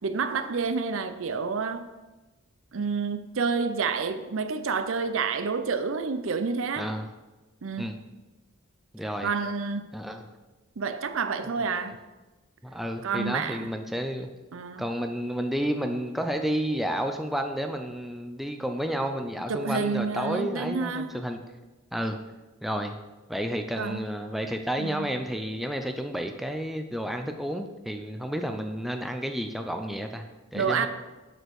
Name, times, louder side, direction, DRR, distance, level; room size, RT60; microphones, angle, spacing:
voice 1, 0.0-1.9 2.7-6.9 7.6-8.0 9.0-10.0 10.8-11.9 13.0-13.7 14.5-14.9 19.5-21.2 23.8-24.1 24.8-25.2 30.5-30.9, right 5 dB, 65° right, 0.6 m, -29 dB
voice 2, 6.8-7.1 7.8-8.0 8.9-9.3 9.9-10.2 11.7-11.8 12.6-14.3 14.8-21.4 21.9-22.2 22.6-23.0 23.3-30.3 30.5-30.9, equal, ahead, 0.5 m, -31 dB
7.8 x 6.1 x 4.7 m
head